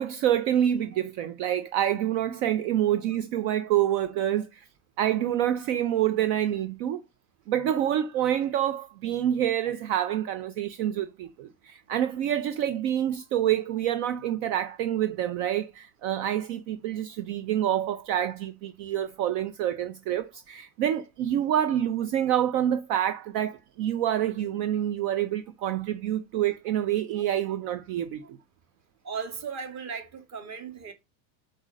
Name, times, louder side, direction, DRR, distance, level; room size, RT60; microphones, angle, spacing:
voice 1, 0.0-4.7 5.0-7.0 7.5-28.2, right 11 dB, 60° right, 0.9 m, -27 dB
voice 2, 29.0-30.9, right 6 dB, 35° right, 2.0 m, -36 dB
8.1 x 4.0 x 6.3 m
cardioid pair, 150°, 48 cm